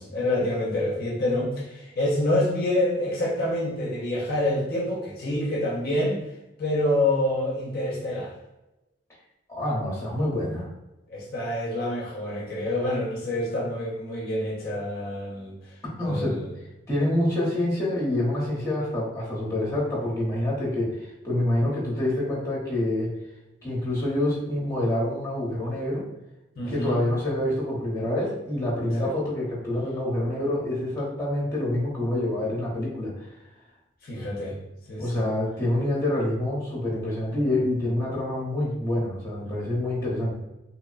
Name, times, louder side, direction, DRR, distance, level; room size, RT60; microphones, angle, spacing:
voice 1, 0.0-6.2 6.6-8.3 11.1-15.7 16.0-16.5 26.6-27.0 29.0-29.1 34.0-34.6 34.9-35.3, left 1 dB, 50° left, -5 dB, 0.5 m, -27 dB
voice 2, 9.5-10.7 16.0-16.4 16.9-23.1 23.6-26.0 26.7-33.3 35.0-40.3, left 1 dB, 15° left, -6 dB, 0.8 m, -27 dB
2.8 x 2.0 x 2.4 m, 0.99 s
head